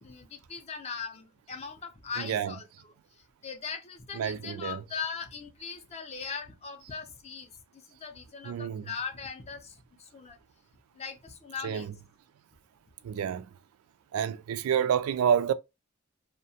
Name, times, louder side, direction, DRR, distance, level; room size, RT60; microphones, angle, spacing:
voice 1, 0.0-2.9 3.4-10.4 11.0-11.9, left 6 dB, 30° left, 0.4 m, -40 dB
voice 2, 2.2-2.5 4.1-4.8 8.4-8.9 11.6-11.9 13.0-13.5 14.1-15.5, right 8 dB, 80° right, 0.3 m, -28 dB
2.7 x 2.1 x 2.7 m
head